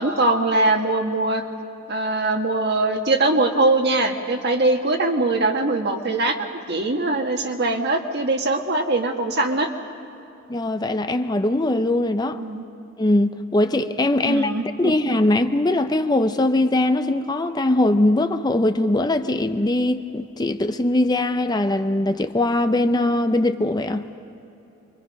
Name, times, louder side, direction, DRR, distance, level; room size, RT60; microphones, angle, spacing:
voice 1, 0.0-1.4 1.9-9.7 12.3-12.6 14.2-14.9, right 2 dB, 55° right, 4 dB, 1.7 m, -22 dB
voice 2, 10.5-12.4 13.0-14.5 14.8-24.1, left 1 dB, 20° left, 8 dB, 0.6 m, -21 dB
27.5 x 23.5 x 5.4 m, 2.8 s
head